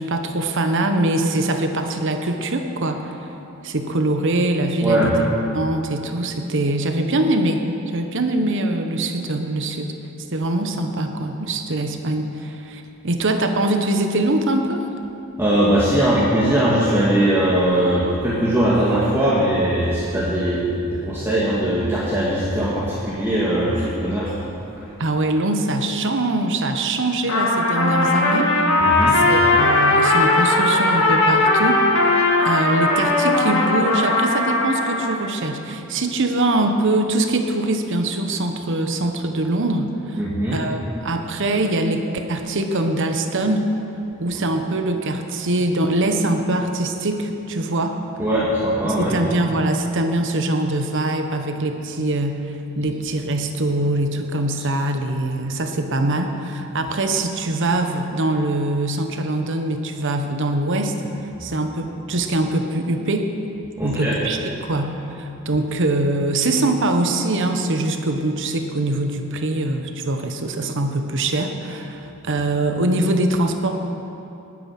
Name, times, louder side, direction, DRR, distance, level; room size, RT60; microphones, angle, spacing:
voice 1, 0.0-3.2 3.6-5.2 5.5-7.6 7.9-9.9 10.3-14.9 25.0-28.7 29.1-32.1 32.4-42.0 42.3-43.7 44.2-48.0 48.8-63.3 63.8-73.7, right 2 dB, 60° right, 5 dB, 1.0 m, -23 dB
voice 2, 4.8-5.1 15.4-24.3 28.8-29.2 40.2-40.6 48.2-49.2 63.8-64.2, right 1 dB, 10° right, -8 dB, 2.0 m, -20 dB
Trumpet, 27.3-35.2, left 2 dB, 60° left, 1.9 m, -18 dB
20.0 x 9.1 x 5.9 m, 2.9 s
head